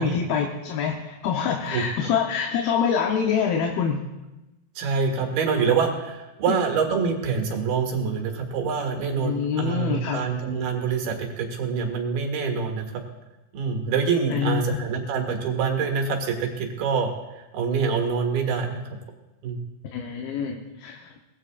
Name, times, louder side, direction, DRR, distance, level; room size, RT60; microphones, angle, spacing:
voice 1, 0.0-4.0 6.5-6.6 9.2-10.2 14.3-14.8 19.9-21.1, left 7 dB, 80° left, 1 dB, 2.9 m, -25 dB
voice 2, 4.8-13.0 13.5-17.1 17.5-18.8 19.4-19.6, right 5 dB, 85° right, 2 dB, 3.9 m, -25 dB
23.5 x 19.0 x 2.5 m, 1.0 s
omnidirectional pair, 4.3 m